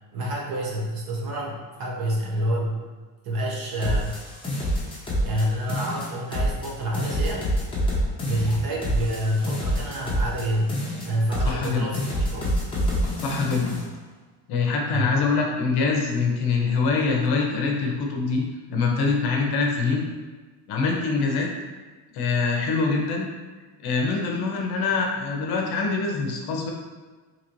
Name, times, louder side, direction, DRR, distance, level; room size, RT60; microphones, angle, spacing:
voice 1, 0.1-2.8 3.2-4.2 5.2-7.5 8.2-12.6 14.9-15.2, equal, 50° right, -3 dB, 0.9 m, -28 dB
sound 1, 3.8-5.4 5.7-6.7 6.9-10.4 10.7-11.7 11.9-13.8, equal, 10° left, 0.7 m, -26 dB
voice 2, 11.5-11.8 13.2-13.8 14.5-18.4 18.7-20.0 20.7-21.5 22.1-23.3 23.8-26.7, left 4 dB, 55° left, 0 dB, 0.7 m, -24 dB
3.9 x 3.0 x 3.0 m, 1.3 s
cardioid pair, 175°, 46 cm